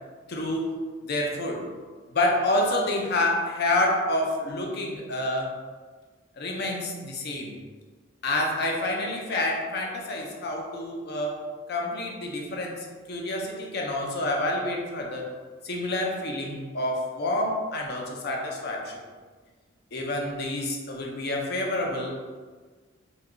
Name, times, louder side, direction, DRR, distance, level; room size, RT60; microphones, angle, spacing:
voice 1, 0.3-0.8 1.0-1.6 2.1-5.5 6.4-7.5 8.2-15.3 15.6-19.0 19.9-22.1, left 1 dB, 50° left, 0 dB, 0.5 m, -28 dB
2.9 x 2.3 x 3.5 m, 1.5 s
head